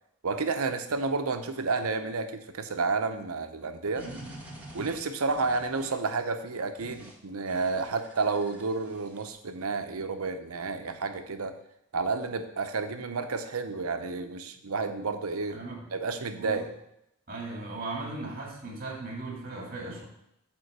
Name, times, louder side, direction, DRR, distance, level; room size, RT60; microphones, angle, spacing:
voice 1, 0.2-4.1 4.7-11.6 11.9-15.6 15.9-16.7, right 4 dB, 85° right, 8 dB, 0.8 m, -31 dB
sound 1, 4.0-6.1 6.8-7.1 7.5-9.3, equal, 10° right, 1.5 m, -48 dB
voice 2, 4.0-4.4 15.5-15.9 16.4-16.6 17.3-20.0, right 2 dB, 40° right, -1 dB, 2.2 m, -38 dB
8.9 x 3.8 x 6.6 m, 0.82 s
head